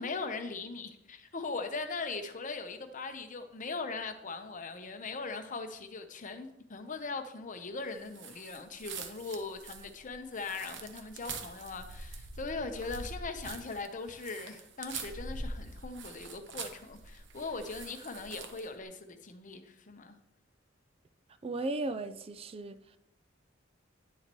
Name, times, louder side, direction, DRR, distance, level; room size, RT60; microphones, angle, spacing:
voice 1, 0.0-20.2, left 4 dB, 40° left, 0.8 m, -40 dB
sound 1, 8.1-18.7, right 3 dB, 65° right, 0.9 m, -44 dB
voice 2, 21.4-23.0, right 2 dB, 30° right, 0.4 m, -36 dB
10.0 x 7.1 x 3.0 m
head